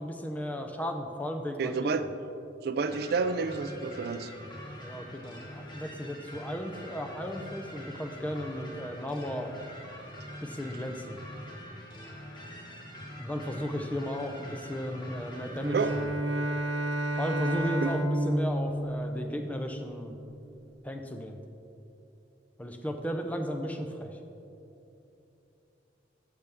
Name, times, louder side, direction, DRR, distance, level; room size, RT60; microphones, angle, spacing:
voice 1, 0.0-2.1 4.8-9.5 10.4-11.2 13.2-16.1 17.2-20.1 20.8-21.4 22.6-24.2, equal, 10° left, 5 dB, 0.5 m, -35 dB
voice 2, 1.6-2.1 2.6-4.3 15.7-16.0 17.8-17.9, right 4 dB, 55° right, 11 dB, 0.4 m, -29 dB
sound 1, 2.9-16.1, equal, 25° left, 1.3 m, -45 dB
Bowed string instrument, 15.5-19.9, right 1 dB, 80° right, 0.8 m, -30 dB
13.5 x 6.8 x 3.5 m, 2.8 s
head